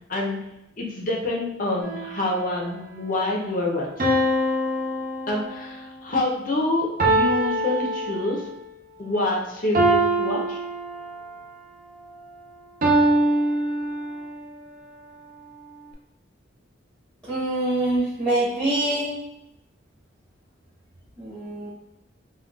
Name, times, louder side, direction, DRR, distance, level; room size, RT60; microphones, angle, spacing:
voice 1, 0.1-0.4 0.8-4.1 5.3-8.5 9.0-10.6, left 2 dB, 40° left, -1 dB, 0.5 m, -27 dB
sound 1, 1.8-2.6 4.0-5.8 7.0-8.6 9.7-11.4 12.8-14.4, right 1 dB, 45° right, 0.4 m, -24 dB
voice 2, 17.3-19.1 21.2-21.7, right 1 dB, 15° right, -12 dB, 0.9 m, -24 dB
3.7 x 2.2 x 2.3 m, 0.88 s
head